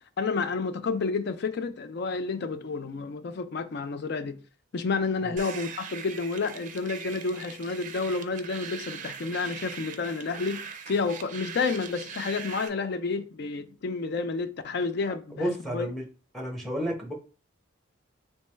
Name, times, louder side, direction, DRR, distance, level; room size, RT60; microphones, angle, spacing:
voice 1, 0.2-4.4 4.7-15.9, left 4 dB, 55° left, 0.4 m, -30 dB
sound 1, 5.4-12.7, right 7 dB, 40° right, 0.4 m, -41 dB
voice 2, 15.3-16.0 16.3-17.1, equal, ahead, 0.7 m, -31 dB
3.3 x 3.1 x 3.2 m
head